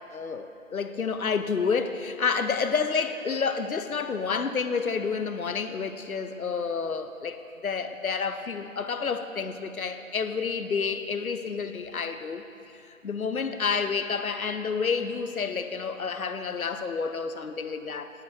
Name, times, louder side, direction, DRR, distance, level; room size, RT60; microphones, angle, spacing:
voice 1, 0.1-18.1, left 5 dB, 80° left, 9 dB, 0.7 m, -29 dB
10.5 x 9.4 x 3.1 m, 2.7 s
figure-of-eight pair, 155°, 42 cm